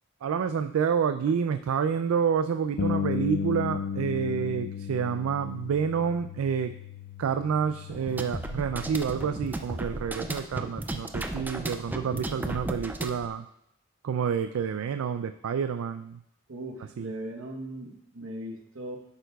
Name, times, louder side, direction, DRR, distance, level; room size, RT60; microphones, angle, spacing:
voice 1, 0.2-6.7 7.2-13.5 14.0-16.2 17.0-17.1, right 7 dB, 85° right, 9 dB, 0.3 m, -28 dB
Bass guitar, 2.8-9.0, left 6 dB, 60° left, 0.4 m, -34 dB
sound 1, 7.9-13.3, right 1 dB, 10° right, 0.4 m, -35 dB
voice 2, 16.5-19.0, right 1 dB, 70° right, 1 dB, 1.1 m, -38 dB
10.5 x 9.1 x 2.3 m, 0.81 s
head